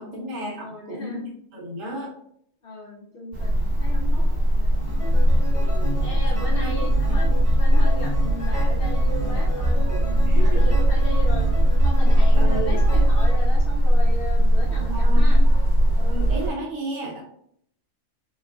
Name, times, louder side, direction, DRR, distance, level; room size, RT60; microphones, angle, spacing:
voice 1, 0.0-2.1 5.6-6.1 6.6-7.0 9.7-10.6 12.4-12.8 14.9-15.4 16.0-17.2, right 1 dB, 75° right, -3 dB, 1.3 m, -33 dB
voice 2, 0.6-1.2 2.6-4.8 6.0-11.5 11.8-15.4, left 1 dB, 55° left, -2 dB, 0.7 m, -36 dB
sound 1, 3.3-16.5, equal, 45° right, 1.4 m, -19 dB
sound 2, 4.7-13.4, right 1 dB, 10° right, 1.2 m, -33 dB
4.2 x 2.3 x 2.3 m, 0.70 s
omnidirectional pair, 1.4 m